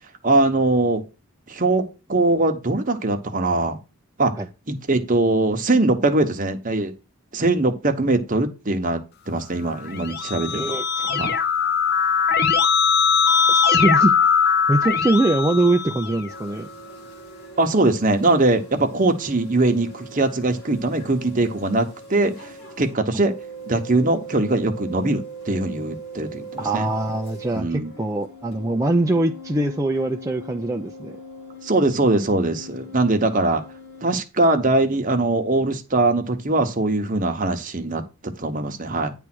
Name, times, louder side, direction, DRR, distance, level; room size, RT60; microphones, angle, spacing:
voice 1, 0.2-1.0 1.5-3.8 4.2-4.4 4.7-6.9 7.3-9.0 9.3-10.6 11.2-11.3 17.6-22.3 22.8-23.3 23.7-26.9 27.5-27.9 31.6-33.6 34.0-39.1, right 2 dB, 35° right, 1.0 m, -21 dB
Keyboard (musical), 9.8-16.4, left 6 dB, 45° left, 0.7 m, -20 dB
voice 2, 10.5-11.4 13.5-14.3 14.7-16.7 26.6-31.2, right 2 dB, 15° right, 0.5 m, -23 dB
sound 1, 16.3-22.9 23.2-27.6 27.8-34.1, right 2 dB, 70° left, 2.5 m, -40 dB
9.7 x 3.4 x 6.0 m
head